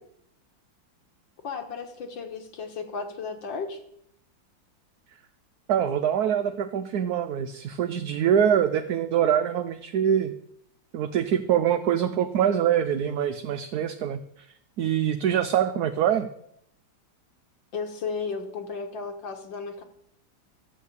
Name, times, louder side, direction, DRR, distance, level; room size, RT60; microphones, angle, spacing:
voice 1, 1.4-3.8 17.7-19.8, left 5 dB, 75° left, 4 dB, 2.1 m, -34 dB
voice 2, 5.7-10.3 10.9-14.5 14.8-16.3, right 9 dB, 65° right, 10 dB, 1.1 m, -24 dB
13.0 x 6.5 x 8.4 m, 0.72 s
omnidirectional pair, 2.1 m